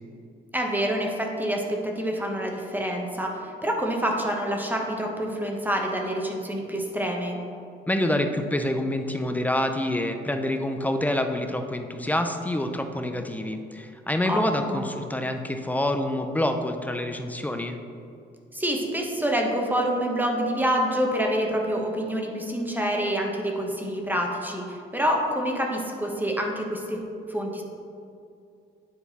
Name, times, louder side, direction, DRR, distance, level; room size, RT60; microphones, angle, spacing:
voice 1, 0.5-7.4 14.3-14.4 14.7-14.8 18.5-27.0 27.3-27.6, equal, 10° right, 0 dB, 1.1 m, -27 dB
voice 2, 7.9-17.8, left 1 dB, 10° left, 6 dB, 0.5 m, -27 dB
9.7 x 3.9 x 4.1 m, 2.5 s
cardioid pair, 90°, 20 cm